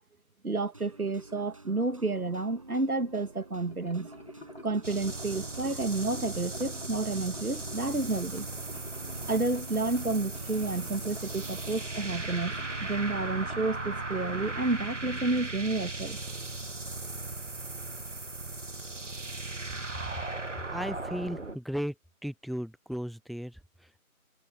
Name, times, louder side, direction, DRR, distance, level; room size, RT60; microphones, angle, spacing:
voice 1, 0.4-4.1 4.6-8.5 9.2-12.5 12.8-16.2, right 3 dB, 85° right, 2.1 m, -30 dB
sound 1, 0.7-15.9, right 2 dB, 25° right, 7.8 m, -50 dB
sound 2, 3.6-13.7, left 1 dB, 45° left, 3.2 m, -49 dB
sound 3, 4.8-21.6, right 2 dB, 55° right, 1.8 m, -37 dB
voice 2, 20.7-22.0 22.2-24.0, equal, ahead, 0.9 m, -36 dB
figure-of-eight pair, 180°, 43 cm